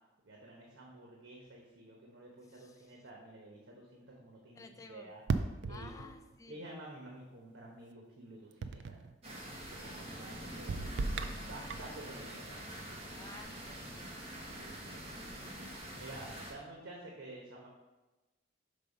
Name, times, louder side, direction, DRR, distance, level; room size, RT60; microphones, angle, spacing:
voice 1, 0.2-5.2 5.7-6.1 6.5-9.0 9.5-10.8 11.5-12.6 14.5-15.0 15.9-17.7, right 1 dB, 90° right, -2 dB, 1.0 m, -51 dB
voice 2, 2.5-3.0 4.5-5.1 5.7-6.6 9.7-10.2 13.2-14.1, left 3 dB, 15° left, 4 dB, 0.4 m, -54 dB
sound 1, 5.3-6.3 8.6-9.2 10.7-12.0, right 4 dB, 65° right, 0.4 m, -36 dB
sound 2, 9.2-16.5, right 1 dB, 35° right, 1.3 m, -45 dB
5.4 x 3.8 x 5.3 m, 1.1 s
head